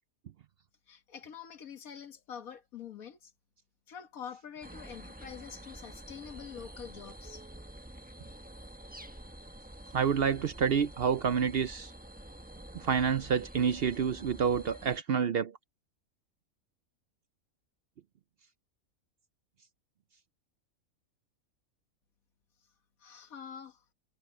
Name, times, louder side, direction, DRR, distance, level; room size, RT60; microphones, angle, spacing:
voice 1, 0.9-3.3 3.9-7.4 23.0-23.8, left 8 dB, 85° left, 1.9 m, -46 dB
sound 1, 4.6-15.0, right 1 dB, 5° right, 1.1 m, -48 dB
voice 2, 9.9-11.9 12.7-15.6, right 7 dB, 60° right, 0.6 m, -28 dB
omnidirectional pair, 1.4 m